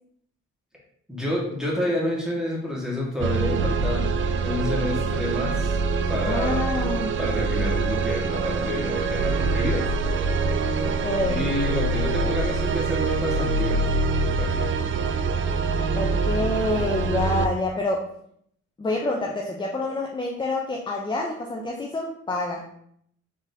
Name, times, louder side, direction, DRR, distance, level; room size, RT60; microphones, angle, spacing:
voice 1, 1.1-4.1 4.4-5.8 6.1-6.7 7.2-9.9 11.3-13.8 14.2-14.7, left 1 dB, ahead, -4 dB, 1.5 m, -29 dB
sound 1, 3.2-17.5, right 4 dB, 45° right, 0.4 m, -24 dB
voice 2, 6.2-7.2 10.8-11.5 15.9-18.0 18.8-22.6, left 2 dB, 15° left, 0 dB, 0.5 m, -27 dB
4.0 x 3.5 x 2.7 m, 0.68 s
cardioid pair, 90°, 30 cm